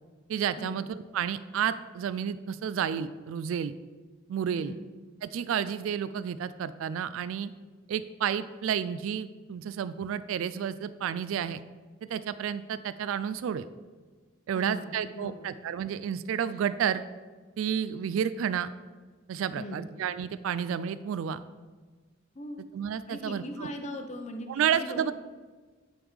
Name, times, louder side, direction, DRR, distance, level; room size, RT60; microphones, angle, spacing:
voice 1, 0.3-3.7 4.3-4.7 5.2-7.5 7.9-11.6 12.0-13.7 14.5-17.0 17.6-18.7 19.3-21.4 22.7-23.7 24.5-25.1, right 8 dB, 75° right, 14 dB, 0.3 m, -31 dB
voice 2, 4.6-4.9 14.5-15.5 19.5-19.9 22.3-22.6 23.1-25.1, left 1 dB, 35° left, 5 dB, 0.7 m, -40 dB
10.0 x 3.5 x 4.9 m, 1.4 s
head